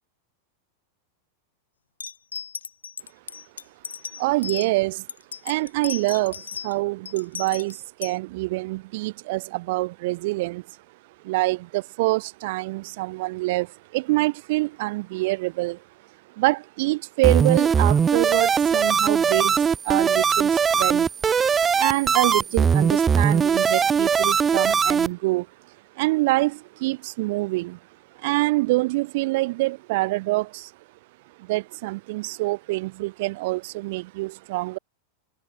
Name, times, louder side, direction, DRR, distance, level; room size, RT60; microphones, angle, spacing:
sound 1, 2.0-4.7 5.1-6.7 7.0-8.1, left 6 dB, 70° left, 2.5 m, -35 dB
voice 1, 4.2-5.1 5.4-10.6 11.2-15.8 16.3-21.1 21.7-25.5 25.9-27.8 28.2-30.7 31.4-34.8, right 21 dB, 50° right, 2.7 m, -26 dB
sound 2, 17.2-25.1, right 6 dB, 20° right, 0.9 m, -20 dB
figure-of-eight pair, 90°, 0 cm